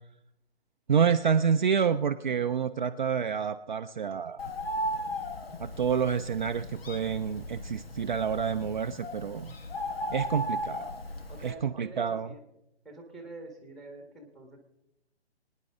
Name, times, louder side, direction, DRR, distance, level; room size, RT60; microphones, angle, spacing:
voice 1, 0.9-4.5 5.6-9.6 10.1-10.9 11.4-12.3, right 7 dB, 45° right, 7 dB, 0.5 m, -28 dB
Bird, 4.4-11.5, equal, 60° left, 1.7 m, -36 dB
voice 2, 11.3-12.4 12.8-14.6, right 2 dB, ahead, 3 dB, 1.5 m, -46 dB
24.0 x 9.9 x 3.6 m, 0.85 s
figure-of-eight pair, 140°, 33 cm